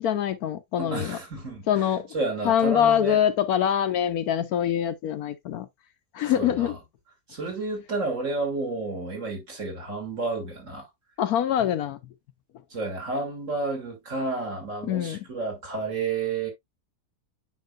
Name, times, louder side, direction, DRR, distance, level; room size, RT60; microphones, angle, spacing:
voice 1, 0.0-1.2 1.7-2.1 2.4-5.7 6.1-6.8 11.2-12.0 14.8-15.2, left 9 dB, 70° left, 1.1 m, -24 dB
voice 2, 0.8-1.8 2.1-3.2 6.3-6.7 7.3-10.9 12.7-16.5, right 3 dB, 50° right, 2.9 m, -31 dB
9.4 x 5.1 x 2.3 m
omnidirectional pair, 1.7 m